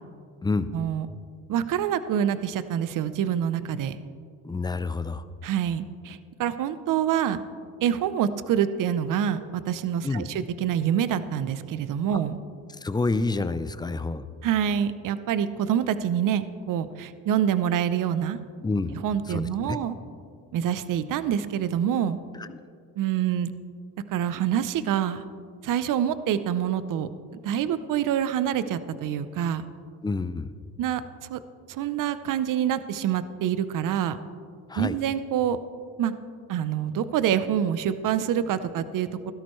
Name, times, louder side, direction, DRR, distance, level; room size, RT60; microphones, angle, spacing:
voice 1, 0.7-1.1 1.5-4.0 5.4-7.4 7.8-12.4 14.4-18.4 19.0-20.0 20.5-22.2 23.0-23.5 24.1-25.2 25.6-27.1 27.4-29.7 30.8-31.0 31.3-31.4 31.7-34.2 34.8-35.6 36.0-36.1 36.5-39.3, right 9 dB, 55° right, 13 dB, 0.7 m, -26 dB
voice 2, 4.4-5.2 10.0-10.3 12.8-14.2 18.6-19.0 19.3-19.8 22.4-22.6 30.0-30.5 34.7-35.0, left 3 dB, 10° left, 13 dB, 0.5 m, -28 dB
16.0 x 13.0 x 3.2 m, 2.2 s
supercardioid pair, 80°, 38 cm